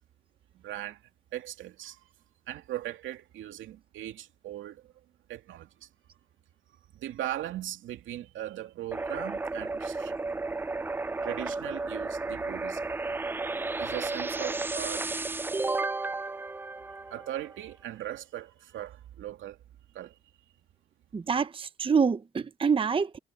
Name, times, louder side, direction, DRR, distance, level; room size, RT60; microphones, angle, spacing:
voice 1, 0.5-1.0 1.3-2.0 2.5-4.9 5.3-5.9 6.9-10.1 11.2-12.8 13.8-15.1 17.1-19.6 19.9-20.2, right 13 dB, 80° right, 2.6 m, -39 dB
sound 1, 8.9-17.6, right 3 dB, 10° right, 0.3 m, -33 dB
voice 2, 21.1-23.2, right 6 dB, 25° right, 0.8 m, -26 dB
cardioid pair, 90°, 20 cm